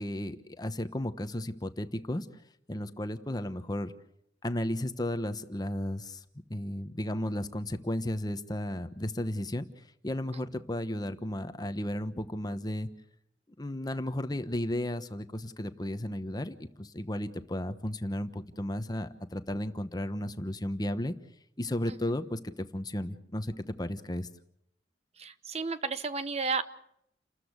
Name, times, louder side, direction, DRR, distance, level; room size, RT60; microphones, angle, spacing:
voice 1, 0.0-2.3 2.7-3.9 4.4-6.2 6.5-12.9 13.6-21.1 21.6-24.3, left 1 dB, 25° left, 10 dB, 1.2 m, -34 dB
voice 2, 25.2-26.6, right 4 dB, 35° right, 12 dB, 1.0 m, -32 dB
29.5 x 14.0 x 8.1 m, 0.74 s
head